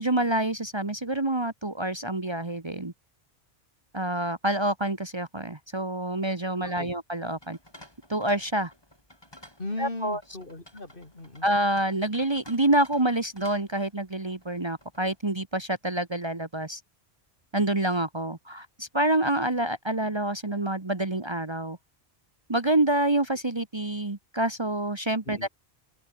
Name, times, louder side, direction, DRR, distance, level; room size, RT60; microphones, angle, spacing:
voice 1, 0.0-2.9 3.9-7.6 8.1-8.7 9.8-10.2 11.4-16.8 17.5-21.8 22.5-25.5, right 1 dB, 25° right, 1.3 m, -27 dB
sound 1, 7.2-15.3, left 1 dB, 25° left, 6.6 m, -53 dB
voice 2, 9.6-11.5 25.3-25.5, left 2 dB, 55° left, 3.9 m, -37 dB
open air
omnidirectional pair, 1.1 m